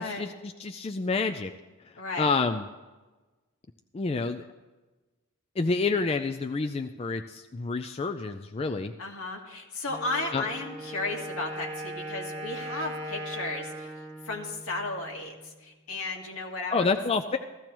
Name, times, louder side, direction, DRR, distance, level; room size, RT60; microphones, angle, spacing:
voice 1, 0.0-1.5 1.8-2.7 3.9-4.4 5.6-8.9 10.3-10.4 16.7-17.4, left 4 dB, 25° left, 6 dB, 0.3 m, -28 dB
voice 2, 2.0-2.4 9.0-13.9 14.2-16.9, left 2 dB, 80° left, 0 dB, 1.9 m, -34 dB
Wind instrument woodwind instrument, 9.8-15.6, right 1 dB, 25° right, 2.7 m, -39 dB
15.5 x 13.5 x 3.0 m, 1.2 s
head